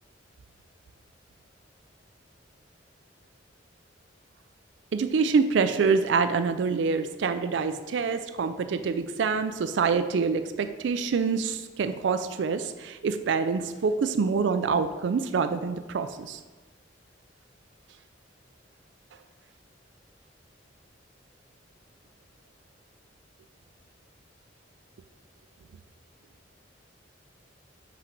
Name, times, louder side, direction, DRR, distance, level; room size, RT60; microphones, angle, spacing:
voice 1, 4.9-16.4, right 5 dB, 70° right, 9 dB, 0.4 m, -26 dB
5.9 x 5.1 x 5.8 m, 1.2 s
head